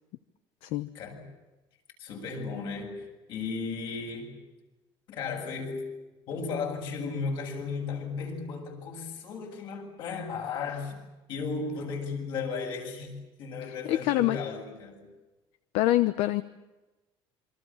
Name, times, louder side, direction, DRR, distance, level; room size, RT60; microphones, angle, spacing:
voice 1, 2.0-4.4 5.1-5.9 6.3-11.0 11.3-15.1, left 4 dB, 55° left, 2 dB, 7.8 m, -35 dB
voice 2, 13.6-14.4 15.7-16.4, left 15 dB, 75° left, 13 dB, 1.0 m, -25 dB
27.5 x 25.0 x 7.3 m, 1.1 s
cardioid pair, 180°, 10 cm